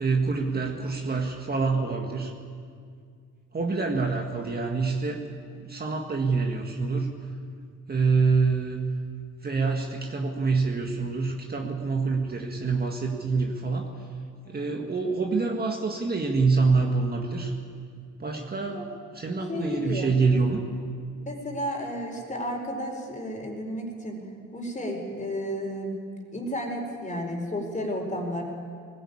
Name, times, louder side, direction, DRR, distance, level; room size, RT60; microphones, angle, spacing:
voice 1, 0.0-2.3 3.5-5.2 5.6-7.2 7.9-8.9 9.4-13.9 14.5-17.5 18.2-18.8 19.1-20.6, right 4 dB, 30° right, 2 dB, 1.9 m, -26 dB
voice 2, 14.4-14.8 18.7-19.2 19.5-20.1 21.2-24.2 24.5-25.9 26.3-28.4, equal, 25° left, 1 dB, 4.5 m, -32 dB
20.0 x 16.0 x 8.8 m, 2.2 s
cardioid pair, 100°, 31 cm